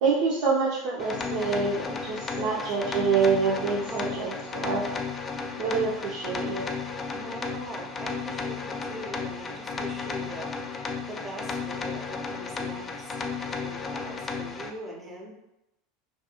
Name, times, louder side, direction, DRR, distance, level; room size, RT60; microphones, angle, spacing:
voice 1, 0.0-5.0 5.6-6.7, right 5 dB, 65° right, -5 dB, 0.4 m, -26 dB
sound 1, 1.0-14.7, left 4 dB, 30° left, 0.3 m, -34 dB
voice 2, 2.0-2.7 3.8-4.3 7.1-10.5 11.0-13.3 13.6-15.3, right 1 dB, 20° right, -1 dB, 0.6 m, -41 dB
2.4 x 2.3 x 2.7 m, 0.92 s
hypercardioid pair, 85°, 0 cm